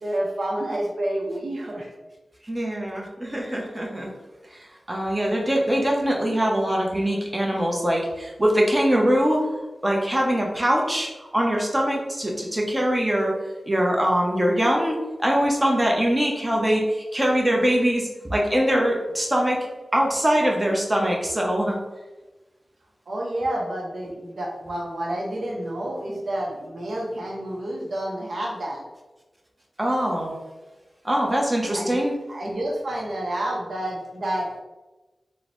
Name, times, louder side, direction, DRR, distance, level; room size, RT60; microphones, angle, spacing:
voice 1, 0.0-1.9 23.1-28.8 31.7-31.9 32.3-34.6, right 1 dB, 75° right, -1 dB, 0.6 m, -29 dB
voice 2, 2.5-4.1 4.5-4.6 4.9-9.4 9.8-13.3 13.7-19.7 19.9-21.8 29.8-30.3 31.0-32.1, equal, 20° right, -1 dB, 0.7 m, -22 dB
3.9 x 2.0 x 3.0 m, 1.1 s
wide cardioid pair, 55°, 0 cm